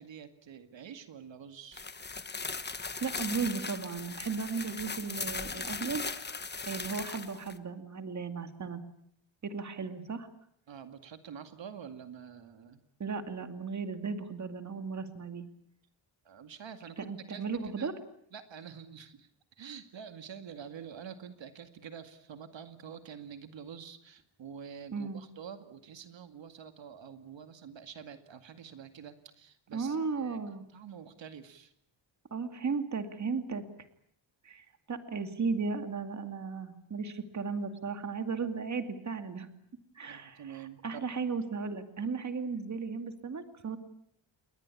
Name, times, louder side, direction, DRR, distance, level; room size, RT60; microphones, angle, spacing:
voice 1, 0.0-1.9 10.7-12.8 16.2-17.4 17.8-17.9 18.3-19.3 19.6-30.4 30.7-31.7 40.1-41.0, right 7 dB, 70° right, 8 dB, 2.3 m, -47 dB
sound 1, 1.7-7.6, left 4 dB, 20° left, 1.3 m, -38 dB
voice 2, 3.0-6.0 6.7-8.8 9.4-10.3 13.0-15.5 17.0-17.9 24.9-25.2 29.7-30.6 32.3-33.6 34.4-39.5 39.9-43.8, right 5 dB, 35° right, 8 dB, 2.5 m, -35 dB
29.5 x 22.0 x 8.5 m, 0.67 s
wide cardioid pair, 165°, 46 cm